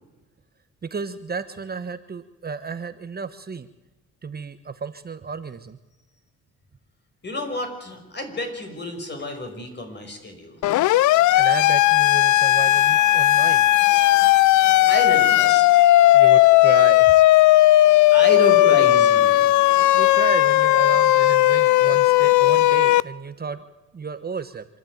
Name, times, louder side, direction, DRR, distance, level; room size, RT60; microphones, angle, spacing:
voice 1, 0.8-3.7 4.2-5.8 11.0-13.7 16.1-17.2 19.9-23.6 23.9-24.7, right 5 dB, 30° right, 10 dB, 1.1 m, -32 dB
voice 2, 7.2-10.6 14.8-15.6 18.1-19.4, left 1 dB, 35° left, 4 dB, 6.2 m, -29 dB
Siren, 10.6-23.0, left 15 dB, 75° left, 0.6 m, -16 dB
26.5 x 12.0 x 9.3 m, 1.1 s
cardioid pair, 90°, 30 cm